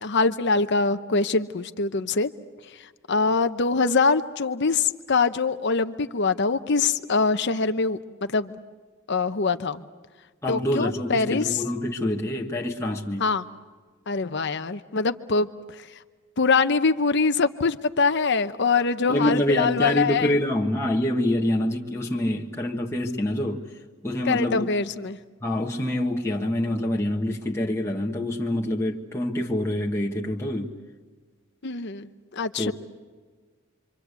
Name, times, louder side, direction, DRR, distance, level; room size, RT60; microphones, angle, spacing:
voice 1, 0.0-2.3 3.1-8.6 9.1-9.8 10.5-11.6 13.2-13.5 14.1-15.5 16.4-20.3 24.3-25.2 31.6-32.1 32.4-32.7, left 4 dB, 60° left, 0.9 m, -23 dB
voice 2, 10.4-13.2 19.1-23.6 24.0-24.7 25.4-30.7 32.6-32.7, left 1 dB, 15° left, 1.5 m, -26 dB
28.0 x 25.0 x 8.3 m
head